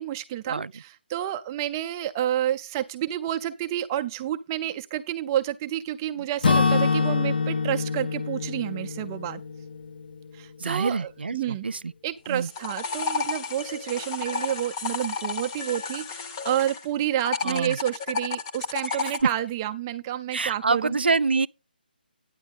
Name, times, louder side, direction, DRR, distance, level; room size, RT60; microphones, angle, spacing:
voice 1, 0.0-9.4 10.3-11.7 12.0-21.0, right 12 dB, 20° right, 0.4 m, -29 dB
Acoustic guitar / Strum, 6.4-10.4, left 4 dB, 65° left, 0.7 m, -25 dB
voice 2, 10.6-11.9 12.3-12.5 17.4-17.8 18.9-19.3 20.3-21.5, right 4 dB, 80° right, 0.4 m, -26 dB
sound 1, 12.3-16.8 17.2-19.2, left 5 dB, 25° left, 0.8 m, -31 dB
9.6 x 8.7 x 3.6 m
figure-of-eight pair, 155°, 5 cm